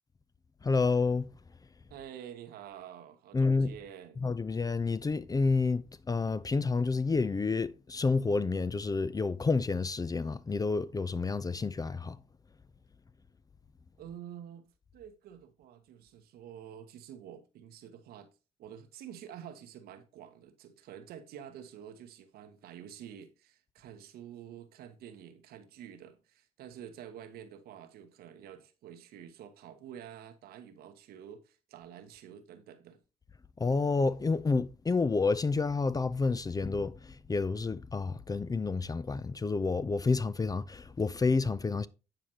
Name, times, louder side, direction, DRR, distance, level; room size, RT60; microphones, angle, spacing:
voice 1, 0.6-1.3 3.3-3.7 4.2-12.2 33.6-41.9, left 4 dB, 25° left, 0.4 m, -29 dB
voice 2, 1.9-4.2 14.0-18.3 18.6-33.0, right 9 dB, 75° right, 0.9 m, -48 dB
8.9 x 4.9 x 2.9 m
hypercardioid pair, 50°, 16 cm